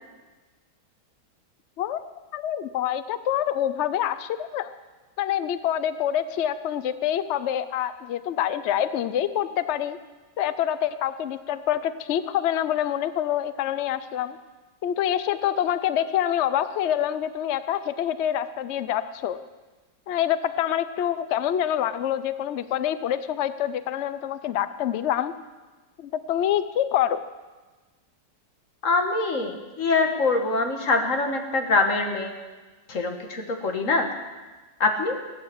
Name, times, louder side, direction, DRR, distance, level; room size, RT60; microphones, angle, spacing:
voice 1, 2.3-4.7 5.2-10.0 10.4-14.4 14.8-19.4 20.1-25.3 26.0-27.2, left 10 dB, 80° left, 13 dB, 0.6 m, -26 dB
voice 2, 28.8-32.3 32.9-34.1 34.8-35.2, left 3 dB, 45° left, 4 dB, 2.0 m, -24 dB
16.5 x 9.8 x 7.8 m, 1.3 s
omnidirectional pair, 1.9 m